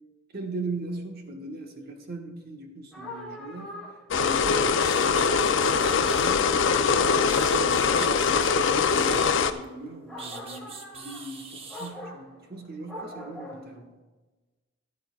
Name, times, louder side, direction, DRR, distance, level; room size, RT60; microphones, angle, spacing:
voice 1, 0.3-3.7 4.2-8.2 8.6-13.9, right 2 dB, 55° right, 3 dB, 1.4 m, -39 dB
sound 1, 2.9-13.8, left 1 dB, 5° left, 1.9 m, -42 dB
sound 2, 4.1-9.5, left 5 dB, 80° left, 0.5 m, -22 dB
sound 3, 4.4-4.5 4.8-6.4 7.0-9.6 10.2-11.9, right 4 dB, 30° right, 0.9 m, -43 dB
14.5 x 10.5 x 2.4 m, 1.2 s
head